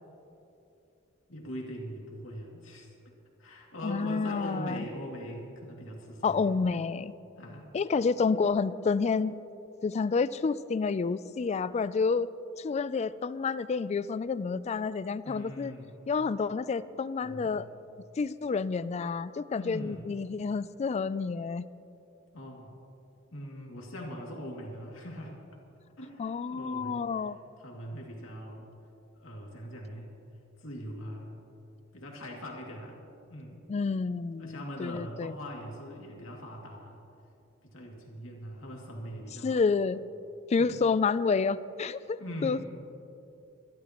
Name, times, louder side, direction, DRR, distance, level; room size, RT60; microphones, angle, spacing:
voice 1, 1.3-2.9 3.4-6.7 7.4-7.7 15.2-16.0 17.2-17.7 19.6-20.1 22.3-22.7 23.3-25.4 26.0-28.7 29.2-30.1 30.6-31.4 31.9-33.0 33.3-33.6 34.4-37.0 37.6-39.6 40.6-40.8 42.2-42.7, equal, 85° left, -1 dB, 2.5 m, -41 dB
voice 2, 3.8-4.9 6.2-7.1 7.7-9.4 9.8-12.3 12.6-15.7 16.1-17.7 18.2-21.7 26.2-27.4 33.7-35.4 39.4-40.0 40.5-42.6, left 4 dB, 35° left, 17 dB, 0.3 m, -29 dB
23.5 x 12.5 x 3.0 m, 2.8 s
head